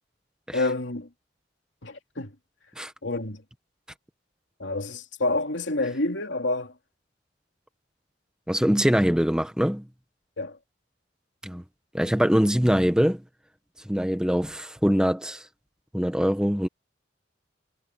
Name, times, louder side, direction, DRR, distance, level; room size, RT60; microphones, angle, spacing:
voice 1, 0.5-1.1 1.8-2.3 3.0-3.4 4.6-6.7 10.4-10.6, left 2 dB, 80° left, 2.9 m, -28 dB
voice 2, 8.5-9.8 11.4-11.6 11.9-13.2 13.8-15.5 15.9-16.7, equal, 5° right, 1.0 m, -23 dB
head